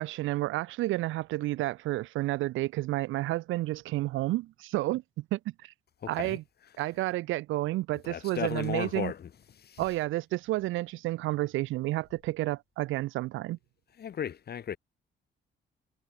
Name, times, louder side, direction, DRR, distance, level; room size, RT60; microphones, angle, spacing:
voice 1, 0.0-5.7 6.1-6.4 6.8-9.1 9.8-13.6, right 17 dB, 85° right, 0.5 m, -31 dB
voice 2, 6.0-6.4 8.0-9.3 9.6-9.8 14.0-14.8, left 8 dB, 55° left, 1.9 m, -35 dB
cardioid pair, 90°, 20 cm